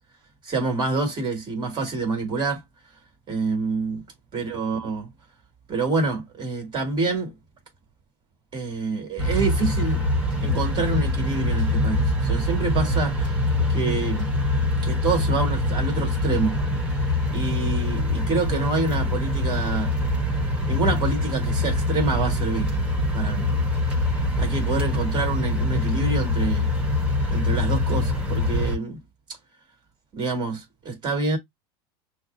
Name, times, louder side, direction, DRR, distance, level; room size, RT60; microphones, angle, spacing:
voice 1, 0.4-2.6 3.3-4.0 4.3-5.1 5.7-7.3 8.5-10.1 10.4-13.4 13.7-14.4 14.8-16.6 17.3-19.9 20.7-22.7 23.1-23.5 24.4-26.7 27.3-29.0 30.1-31.4, right 3 dB, 35° right, 2.0 m, -27 dB
sound 1, 9.2-28.8, left 1 dB, 10° right, 1.3 m, -24 dB
6.1 x 2.1 x 2.5 m
supercardioid pair, 115°, 13 cm